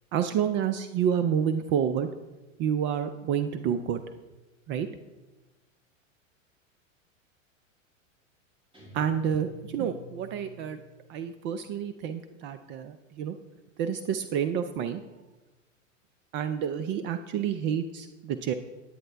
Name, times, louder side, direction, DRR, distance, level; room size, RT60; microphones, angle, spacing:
voice 1, 0.1-2.1 2.6-4.0 4.7-4.9 8.9-10.8 11.1-13.4 13.8-15.0 16.3-18.5, right 8 dB, 30° right, 9 dB, 0.4 m, -29 dB
Guitar, 8.7-11.3, right 1 dB, 15° right, 3.2 m, -48 dB
9.3 x 8.8 x 3.3 m, 1.1 s
hypercardioid pair, 105°, 40 cm